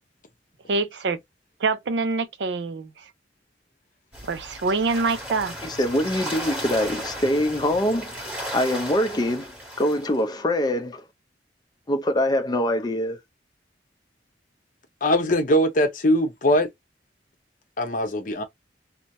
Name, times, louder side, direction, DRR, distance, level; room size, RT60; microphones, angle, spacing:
voice 1, 0.7-1.2 1.6-2.9 4.3-5.5, right 3 dB, 75° right, 0.5 m, -25 dB
sound 1, 4.1-10.2, equal, 10° right, 1.6 m, -35 dB
voice 2, 5.6-8.1 8.5-9.5 9.8-11.0 11.9-13.2, left 1 dB, 25° left, 0.5 m, -24 dB
voice 3, 15.0-16.7 17.8-18.4, equal, 50° left, 0.8 m, -21 dB
3.1 x 2.0 x 2.6 m
head